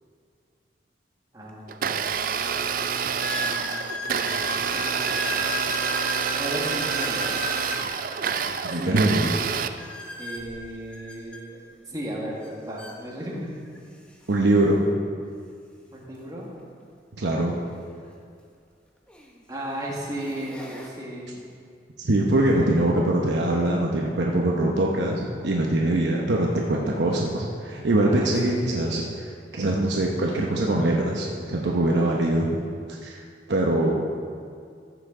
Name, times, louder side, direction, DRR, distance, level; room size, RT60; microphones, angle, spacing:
voice 1, 1.3-2.6 3.4-5.5 6.4-7.5 8.7-9.3 10.2-13.5 15.9-16.5 19.5-21.4 22.5-22.9 28.0-28.8, right 1 dB, 20° right, -3 dB, 1.6 m, -36 dB
sound 1, 1.5-1.6 2.2-2.3 3.2-7.9 9.8-11.4 12.4-12.5 12.8-13.0 13.8-13.9 16.1-16.2 18.2-18.3 19.1-19.4 19.9-20.9, left 1 dB, 5° left, 0.8 m, -34 dB
Domestic sounds home sounds, 1.7-9.7, right 6 dB, 50° right, 0.4 m, -27 dB
voice 2, 8.6-9.4 14.3-14.8 17.2-17.5 22.0-29.0 29.5-32.6 33.0-33.2 33.5-34.0, right 1 dB, 80° right, -1 dB, 0.9 m, -23 dB
14.5 x 6.9 x 3.8 m, 2.2 s
head